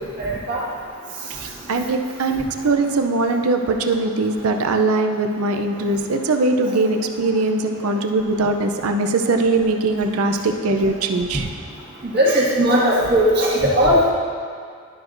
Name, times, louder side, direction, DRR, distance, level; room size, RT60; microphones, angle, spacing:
voice 1, 0.2-0.6 12.1-14.0, equal, 45° right, -6 dB, 1.7 m, -17 dB
voice 2, 1.4-11.5, right 3 dB, 85° right, 5 dB, 0.6 m, -21 dB
12.0 x 6.1 x 2.6 m, 2.1 s
head